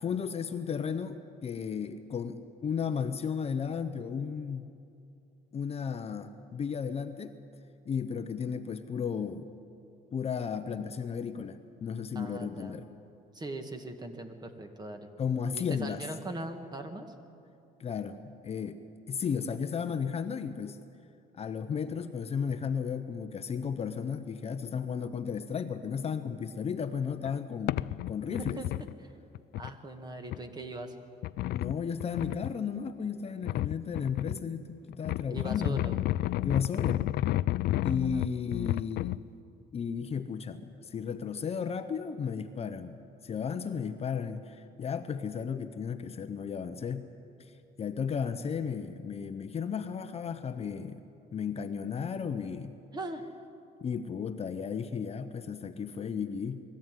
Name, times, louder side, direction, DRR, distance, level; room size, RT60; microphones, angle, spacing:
voice 1, 0.0-4.7 5.5-7.4 7.8-9.5 10.1-12.9 15.2-16.1 17.8-18.8 19.1-20.8 21.4-27.8 28.1-28.6 31.4-35.9 36.4-37.1 37.8-39.2 39.7-43.0 43.2-47.1 47.8-51.0 51.3-52.8 53.8-56.6, left 6 dB, 35° left, 9 dB, 0.9 m, -34 dB
voice 2, 12.2-12.8 13.3-15.1 15.5-17.1 28.3-28.7 29.0-29.1 29.6-31.0 35.3-36.0 37.9-38.2 52.9-53.2, right 2 dB, 25° right, 5 dB, 2.0 m, -40 dB
sound 1, 27.3-27.4 27.7-28.9 29.4-29.7 30.3-30.4 31.2-32.5 33.4-34.4 34.9-39.2, left 16 dB, 70° left, 0.4 m, -31 dB
21.5 x 14.5 x 9.2 m, 2.6 s
cardioid pair, 110°, 17 cm